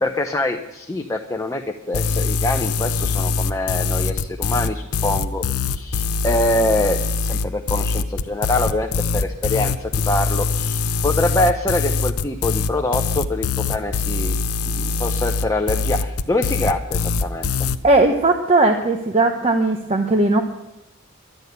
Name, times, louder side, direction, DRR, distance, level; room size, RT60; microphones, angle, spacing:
voice 1, 0.0-14.4 14.7-17.5, left 1 dB, 15° left, 4 dB, 0.7 m, -24 dB
sound 1, 1.9-17.8, left 4 dB, 85° left, 0.6 m, -22 dB
voice 2, 17.8-20.4, right 2 dB, 30° right, 4 dB, 0.9 m, -17 dB
11.5 x 10.5 x 8.0 m, 0.93 s
head